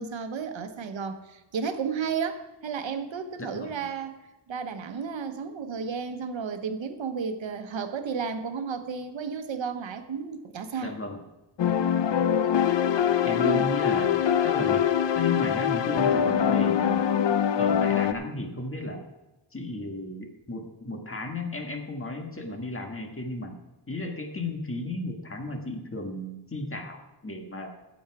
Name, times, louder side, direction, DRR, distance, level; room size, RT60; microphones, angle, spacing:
voice 1, 0.0-4.2 4.5-10.9 13.4-13.7, right 6 dB, 85° right, 8 dB, 1.1 m, -33 dB
voice 2, 3.5-3.8 10.8-11.2 13.2-14.8 15.1-17.0 17.6-19.0 19.5-23.5 23.9-27.7, left 2 dB, 30° left, 4 dB, 1.6 m, -34 dB
sound 1, 11.6-18.1, left 8 dB, 75° left, 0.7 m, -23 dB
15.5 x 7.1 x 4.7 m, 1.0 s
wide cardioid pair, 130°, 44 cm